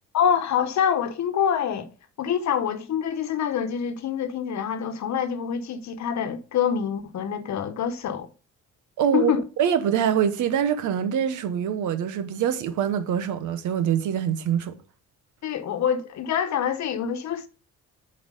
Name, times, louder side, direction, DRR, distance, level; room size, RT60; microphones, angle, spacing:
voice 1, 0.1-1.9 2.2-8.3 9.1-9.4 15.4-17.5, left 8 dB, 65° left, 1.1 m, -26 dB
voice 2, 9.0-14.7, right 9 dB, 80° right, 1.1 m, -24 dB
7.5 x 4.8 x 4.9 m
cardioid pair, 90°, 30 cm